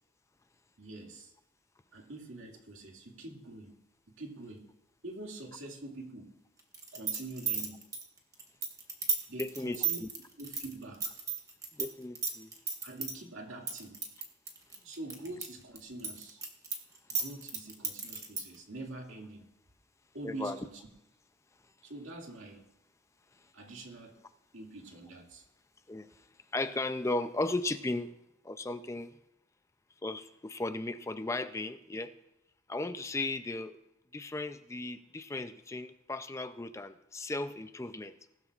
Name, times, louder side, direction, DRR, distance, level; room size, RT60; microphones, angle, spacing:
voice 1, 0.8-1.3 1.9-3.7 4.1-4.7 5.0-6.3 6.9-7.8 9.3-10.0 10.4-11.2 12.8-14.0 14.8-16.4 17.1-19.4 20.1-20.8 21.8-22.6 23.5-24.2 24.5-25.4, right 2 dB, 85° right, 0 dB, 2.2 m, -45 dB
sound 1, 6.7-11.9 12.1-13.1 13.7-15.4 15.8-18.6, right 6 dB, 15° right, 1.2 m, -33 dB
voice 2, 9.4-10.1 11.8-12.5 20.2-20.6 25.9-26.3 26.5-28.1 28.4-29.1 30.0-32.1 32.7-33.8 34.1-38.1, left 2 dB, 15° left, 11 dB, 0.4 m, -36 dB
19.5 x 12.5 x 2.4 m, 0.86 s
head